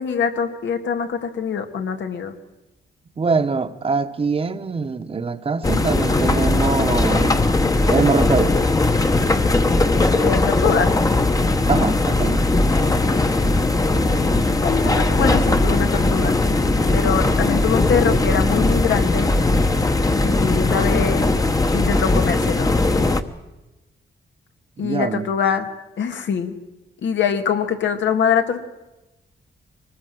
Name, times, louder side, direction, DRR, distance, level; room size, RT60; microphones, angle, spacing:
voice 1, 0.0-2.3 10.2-10.9 13.7-16.4 16.9-19.3 20.2-21.3 21.7-22.7 24.8-25.7 26.0-26.5 27.0-28.6, left 7 dB, 90° left, 2.2 m, -23 dB
voice 2, 3.2-7.4 7.9-8.6 11.7-12.4 24.8-25.3, right 4 dB, 30° right, 1.1 m, -23 dB
sound 1, 5.6-23.2, left 2 dB, 20° left, 1.0 m, -19 dB
24.0 x 19.5 x 7.8 m
wide cardioid pair, 170°, 19 cm